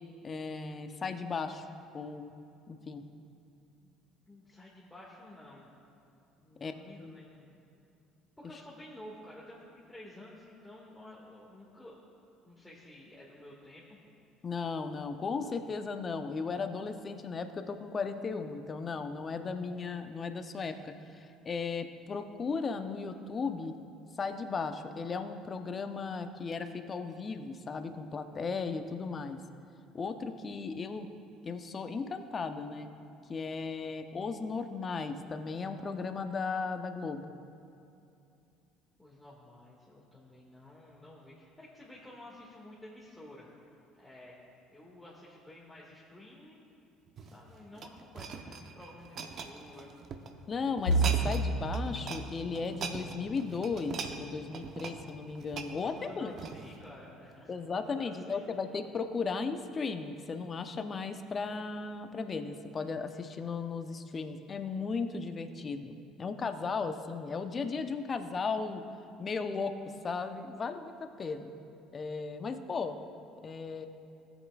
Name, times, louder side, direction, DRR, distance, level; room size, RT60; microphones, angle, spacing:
voice 1, 0.2-1.7 1.9-2.3 2.7-3.0 6.6-6.7 7.0-7.2 14.4-23.8 24.2-29.4 29.9-31.1 31.4-32.9 33.3-37.3 50.5-56.3 57.5-68.8 69.2-69.8 70.0-71.5 71.9-73.0 73.4-73.9, left 4 dB, 35° left, 8 dB, 0.8 m, -36 dB
voice 2, 4.3-5.7 6.4-7.4 8.4-12.0 12.4-14.0 39.0-44.3 44.7-46.6 47.2-49.9 55.7-58.5, left 1 dB, 10° left, -6 dB, 1.9 m, -52 dB
sound 1, 47.1-50.3 50.8-51.5 51.7-52.2 52.5-56.8 57.4-57.5, right 5 dB, 50° right, 0.8 m, -41 dB
sound 2, 50.9-62.7 63.1-63.4 63.7-63.9 64.8-65.3, right 2 dB, 85° left, 0.7 m, -37 dB
17.0 x 8.2 x 2.4 m, 2.6 s
hypercardioid pair, 65°, 0 cm